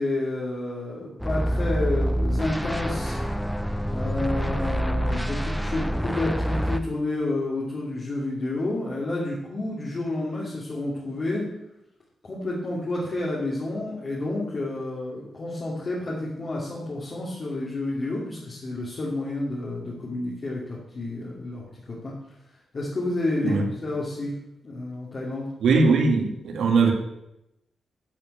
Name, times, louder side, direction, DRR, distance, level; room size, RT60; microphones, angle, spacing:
voice 1, 0.0-3.2 3.9-11.4 12.2-22.1 22.7-24.4 24.6-25.5, left 2 dB, 35° left, -6 dB, 2.7 m, -30 dB
sound 1, 1.2-6.8, equal, ahead, 0.6 m, -26 dB
voice 2, 25.6-26.9, right 4 dB, 80° right, 3 dB, 1.9 m, -20 dB
12.0 x 5.6 x 8.8 m, 0.86 s
wide cardioid pair, 155°, 0 cm